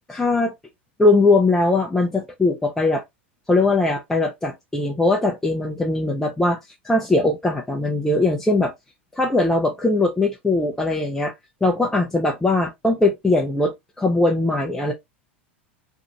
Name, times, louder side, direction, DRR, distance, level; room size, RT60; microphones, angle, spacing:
voice 1, 0.1-0.5 1.0-3.0 3.5-6.6 6.8-8.7 9.1-11.3 11.6-14.9, left 2 dB, 5° left, 0.5 m, -20 dB
2.6 x 2.4 x 2.7 m
hypercardioid pair, 90°, 7 cm